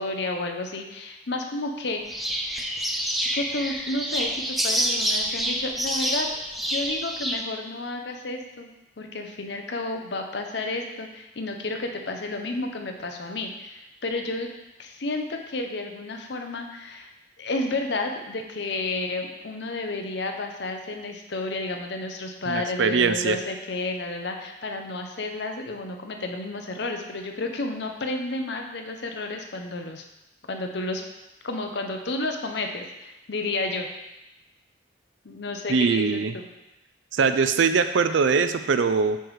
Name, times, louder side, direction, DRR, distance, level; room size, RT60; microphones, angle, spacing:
voice 1, 0.0-2.4 3.3-6.3 6.7-8.7 9.0-14.5 14.8-17.1 17.4-30.0 30.5-31.0 31.4-33.9 35.2-36.5, left 2 dB, 65° left, 4 dB, 0.7 m, -31 dB
sound 1, 2.1-7.4, equal, ahead, 0.3 m, -27 dB
voice 2, 22.5-23.4 35.7-36.3 37.1-39.2, right 5 dB, 75° right, 10 dB, 0.4 m, -22 dB
7.8 x 3.3 x 4.7 m, 0.95 s
head